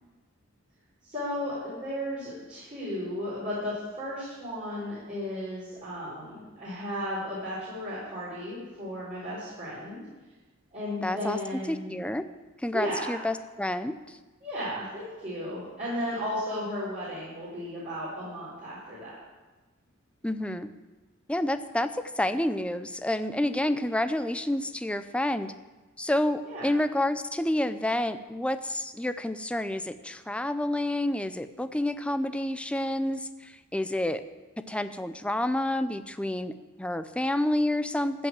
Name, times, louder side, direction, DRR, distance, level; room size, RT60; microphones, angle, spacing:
voice 1, 1.0-10.0 10.7-12.0 12.7-13.1 14.4-19.2 23.4-23.7 26.4-26.7, equal, 35° right, -10 dB, 4.5 m, -34 dB
voice 2, 11.0-11.4 11.7-12.2 12.6-13.9 20.2-20.7 21.3-21.9 22.2-25.5 26.0-34.2 34.7-38.3, left 1 dB, 5° left, 11 dB, 0.5 m, -29 dB
15.0 x 5.5 x 7.5 m, 1.2 s
head